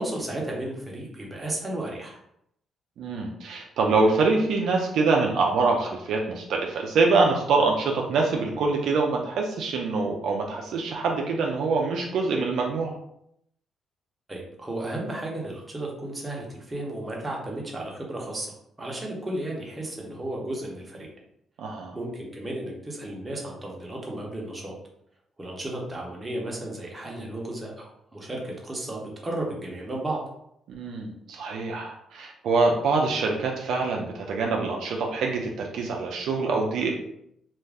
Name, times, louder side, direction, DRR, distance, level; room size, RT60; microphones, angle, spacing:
voice 1, 0.0-2.2 14.3-21.1 21.9-24.7 25.4-30.2, right 1 dB, 20° right, -2 dB, 0.8 m, -34 dB
voice 2, 3.0-13.0 21.6-21.9 30.7-36.9, right 3 dB, 75° right, 0 dB, 0.4 m, -25 dB
2.4 x 2.1 x 3.4 m, 0.74 s
cardioid pair, 90°, 0 cm